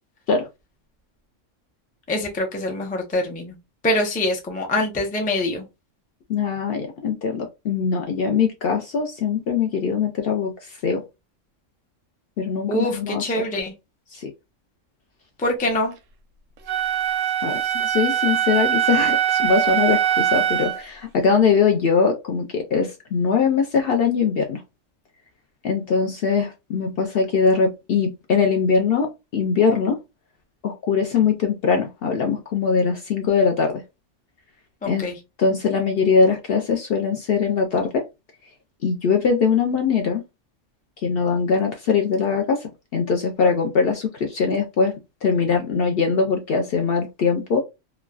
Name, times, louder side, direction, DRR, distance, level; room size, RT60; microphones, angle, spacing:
voice 1, 2.1-3.6 3.8-5.7 12.7-13.7 15.4-15.9 34.8-35.2, left 1 dB, 10° left, 0.4 m, -24 dB
voice 2, 6.3-11.0 12.4-13.2 14.1-14.3 17.4-24.6 25.6-30.0 30.6-33.8 34.9-35.1 35.4-38.0 38.8-40.2 41.0-45.0 45.2-47.6, left 5 dB, 65° left, 0.6 m, -21 dB
Wind instrument woodwind instrument, 16.7-20.8, right 10 dB, 85° right, 1.0 m, -22 dB
3.1 x 2.2 x 2.2 m
omnidirectional pair, 1.3 m